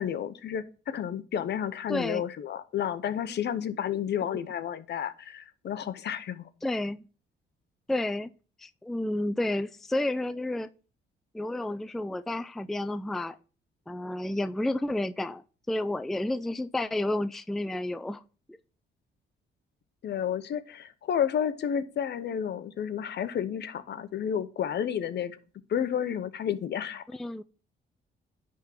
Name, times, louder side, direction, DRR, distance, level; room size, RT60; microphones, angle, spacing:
voice 1, 0.0-6.5 20.0-25.4 25.7-27.0, left 9 dB, 60° left, 0.8 m, -31 dB
voice 2, 1.9-2.2 4.3-4.4 6.6-7.0 7.9-8.3 8.6-10.7 11.3-13.4 13.9-18.2 18.5-18.6 27.1-27.4, left 1 dB, ahead, 0.4 m, -31 dB
10.5 x 3.7 x 5.8 m
cardioid pair, 90°, 20 cm